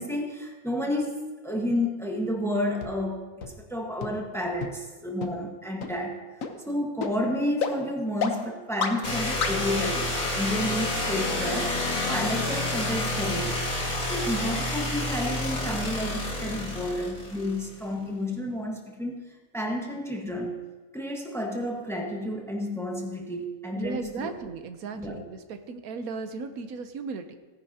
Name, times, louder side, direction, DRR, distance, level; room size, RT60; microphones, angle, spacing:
voice 1, 0.0-6.2 6.6-11.8 12.1-13.6 14.1-19.2 19.5-20.6 20.9-24.3 25.0-25.3, left 1 dB, ahead, 1 dB, 1.3 m, -31 dB
sound 1, 2.8-2.9 3.4-3.5 4.0-4.1 4.6-4.7 5.2-5.3 5.8-5.9 6.4-6.5 7.0-7.1 7.6-7.7 8.2-8.3 8.8-8.9 9.4-9.5, left 6 dB, 70° left, 1.3 m, -28 dB
sound 2, 9.0-17.8, left 2 dB, 90° left, 2.6 m, -29 dB
voice 2, 23.8-27.4, right 4 dB, 85° right, 8 dB, 1.3 m, -36 dB
17.0 x 10.5 x 2.8 m, 1.4 s
omnidirectional pair, 1.5 m